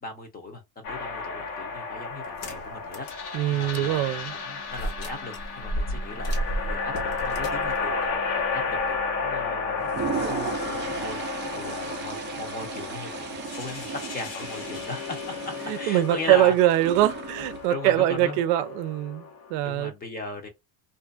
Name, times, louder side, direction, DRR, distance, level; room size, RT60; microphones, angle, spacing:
voice 1, 0.0-11.2 11.5-13.3 13.6-13.9 14.1-16.5 17.7-18.4 19.6-20.5, left 3 dB, 20° left, 0.7 m, -38 dB
sound 1, 0.8-19.5, left 4 dB, 75° left, 1.1 m, -33 dB
sound 2, 2.2-3.2 3.7-3.8 4.7-9.0, right 1 dB, 45° left, 0.9 m, -33 dB
voice 2, 3.3-4.3 15.7-19.2 19.5-19.9, right 13 dB, 70° right, 0.5 m, -23 dB
Toilet flush, 9.8-17.7, right 7 dB, 25° right, 0.4 m, -36 dB
2.6 x 2.4 x 2.3 m
cardioid pair, 135°, 48 cm